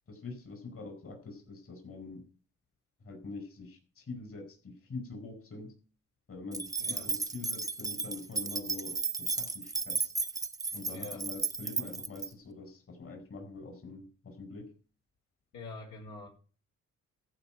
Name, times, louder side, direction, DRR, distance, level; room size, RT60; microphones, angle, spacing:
voice 1, 0.1-2.2 3.0-5.7 6.3-10.1 10.7-14.7, left 3 dB, 45° left, 3 dB, 4.9 m, -44 dB
sound 1, 6.5-12.3, right 3 dB, 10° right, 0.8 m, -34 dB
voice 2, 6.8-7.1 10.9-11.3 15.5-16.3, left 3 dB, 70° left, 0 dB, 5.2 m, -45 dB
14.5 x 5.1 x 9.0 m, 0.38 s
cardioid pair, 90°, 30 cm